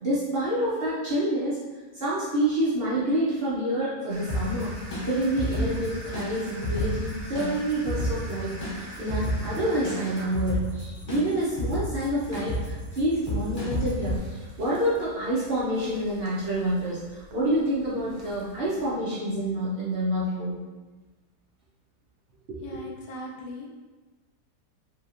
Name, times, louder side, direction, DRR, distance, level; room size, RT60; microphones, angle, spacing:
voice 1, 0.0-1.7 1.9-4.7 5.0-14.2 14.6-20.6 22.5-22.8, right 1 dB, 55° right, -9 dB, 0.7 m, -28 dB
sound 1, 4.1-18.9, right 1 dB, 75° right, 1.2 m, -46 dB
sound 2, 4.3-14.2, equal, 40° left, 1.0 m, -32 dB
voice 2, 22.6-23.7, left 1 dB, 70° left, -1 dB, 1.1 m, -39 dB
3.2 x 2.8 x 2.4 m, 1.3 s
omnidirectional pair, 1.7 m